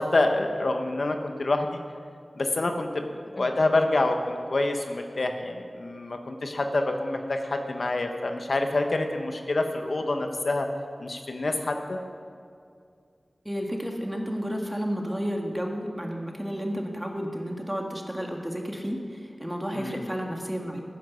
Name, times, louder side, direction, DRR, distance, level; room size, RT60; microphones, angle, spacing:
voice 1, 0.0-1.8 2.4-3.1 3.3-10.7 11.0-12.0 19.7-20.1, left 2 dB, 70° left, 5 dB, 1.0 m, -27 dB
voice 2, 13.4-20.8, equal, 10° right, 1 dB, 1.7 m, -32 dB
14.0 x 9.9 x 5.6 m, 2.3 s
wide cardioid pair, 65°, 0 cm